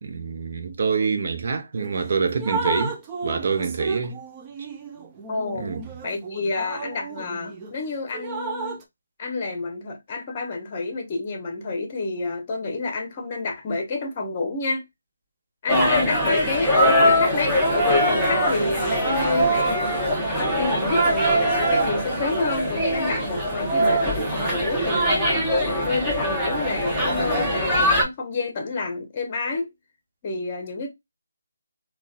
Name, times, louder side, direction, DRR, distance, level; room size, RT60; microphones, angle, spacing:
voice 1, 0.0-3.0 3.2-4.2 5.5-5.9, right 5 dB, 50° right, 0.7 m, -26 dB
Drip, 1.7-1.9 2.3-7.7 8.1-8.8, right 4 dB, 20° right, 0.5 m, -33 dB
voice 2, 5.3-5.7 6.0-8.8 9.2-14.8 15.6-19.9 20.3-25.2 25.6-29.7 30.2-30.9, left 3 dB, 30° left, 0.9 m, -28 dB
sound 1, 15.7-28.0, equal, 5° right, 1.0 m, -22 dB
3.9 x 2.4 x 2.4 m
figure-of-eight pair, 160°, 0 cm